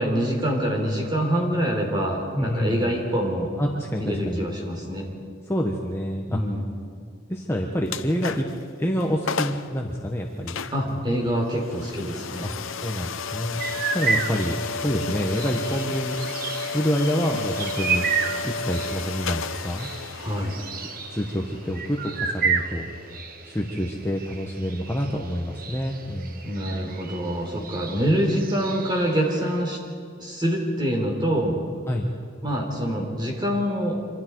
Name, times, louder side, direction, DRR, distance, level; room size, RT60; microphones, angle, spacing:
voice 1, 0.0-3.5 4.0-5.1 6.3-6.6 10.7-12.5 20.1-20.6 26.4-29.8 30.2-31.6 32.4-34.0, equal, 20° right, 0 dB, 3.7 m, -25 dB
voice 2, 2.3-3.0 3.6-4.4 5.5-6.4 7.3-8.5 8.8-10.6 10.8-10.9 12.4-12.5 12.8-16.2 16.7-18.1 18.4-19.9 21.1-22.9 23.4-26.4 31.9-32.1, equal, 10° left, 0 dB, 1.2 m, -27 dB
sound 1, 7.9-8.6 9.0-9.1 9.3-9.7 10.5-23.2, left 4 dB, 75° left, 0.8 m, -33 dB
sound 2, 13.6-29.6, right 5 dB, 45° right, 1.2 m, -32 dB
26.0 x 25.5 x 4.7 m, 2.2 s
head